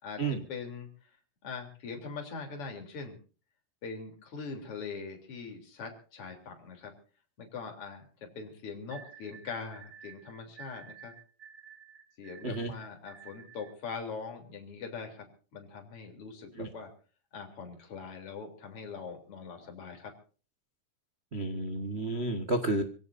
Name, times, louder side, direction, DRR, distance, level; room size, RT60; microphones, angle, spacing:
voice 1, 0.0-1.1 1.4-3.2 3.8-6.9 7.4-11.1 12.2-15.3 15.5-16.9 17.3-20.1, left 5 dB, 45° left, 3 dB, 4.3 m, -42 dB
sound 1, 8.9-13.8, right 8 dB, 35° right, 1.4 m, -52 dB
voice 2, 21.3-22.8, right 2 dB, 60° right, 6 dB, 0.6 m, -31 dB
26.0 x 17.0 x 2.7 m, 0.37 s
omnidirectional pair, 3.7 m